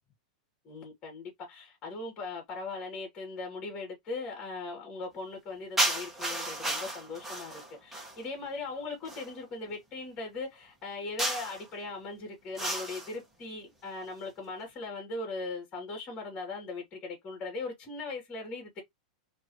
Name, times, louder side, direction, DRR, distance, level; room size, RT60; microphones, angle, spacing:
voice 1, 0.6-18.8, left 3 dB, 30° left, 3.0 m, -39 dB
sound 1, 5.8-8.2 9.0-9.3 11.2-11.6 12.6-13.1, right 1 dB, 5° right, 1.6 m, -32 dB
4.4 x 3.1 x 3.0 m
hypercardioid pair, 130°, 4 cm